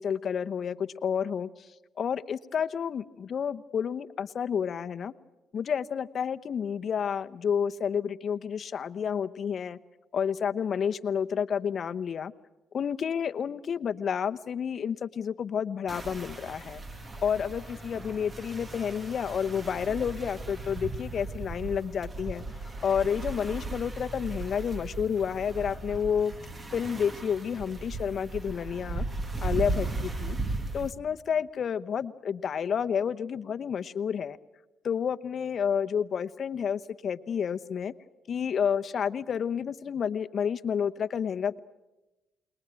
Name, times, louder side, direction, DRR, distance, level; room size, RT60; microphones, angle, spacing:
voice 1, 0.0-1.7 2.0-5.1 5.5-9.8 10.1-12.3 12.7-16.8 17.2-22.4 22.8-26.3 26.7-29.1 29.4-30.4 30.7-34.4 34.8-37.9 38.3-41.6, left 7 dB, 55° left, 10 dB, 0.9 m, -30 dB
sound 1, 15.9-30.9, right 2 dB, 30° right, 1.9 m, -37 dB
29.5 x 20.5 x 8.9 m, 1.0 s
cardioid pair, 90°, 0 cm